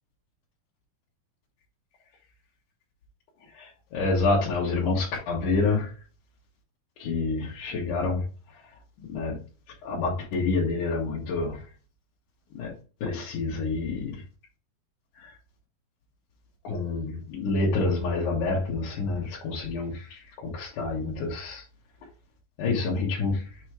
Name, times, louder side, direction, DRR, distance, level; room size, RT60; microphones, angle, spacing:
voice 1, 3.5-5.9 7.0-8.6 9.0-9.4 9.8-11.7 12.5-12.7 13.0-14.2 15.2-15.3 16.6-21.6 22.6-23.6, left 3 dB, 65° left, 2.7 m, -28 dB
7.0 x 3.1 x 4.7 m
omnidirectional pair, 4.0 m